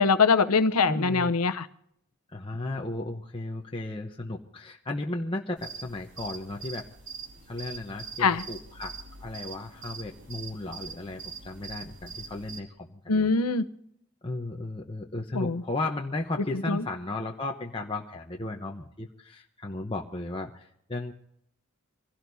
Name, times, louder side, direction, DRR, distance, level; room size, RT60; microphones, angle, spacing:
voice 1, 0.0-1.7 8.2-8.4 13.1-13.6 15.3-15.6 16.7-16.8, left 4 dB, 90° left, 12 dB, 0.8 m, -23 dB
voice 2, 0.9-1.4 2.3-6.9 7.5-13.3 14.2-21.1, left 2 dB, 25° left, 0 dB, 0.9 m, -35 dB
sound 1, 5.6-12.6, right 5 dB, 55° right, 2.8 m, -43 dB
26.0 x 17.0 x 2.7 m, 0.74 s
head